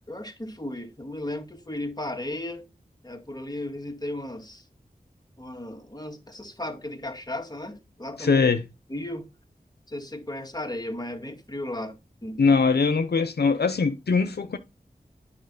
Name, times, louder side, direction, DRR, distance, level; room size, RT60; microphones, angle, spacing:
voice 1, 0.1-2.6 3.0-4.6 5.4-8.4 8.9-9.3 9.9-12.4, left 1 dB, 25° left, 1.8 m, -35 dB
voice 2, 8.2-8.6 12.4-14.6, left 4 dB, 85° left, 0.7 m, -21 dB
9.2 x 5.8 x 4.0 m
cardioid pair, 40°, 16 cm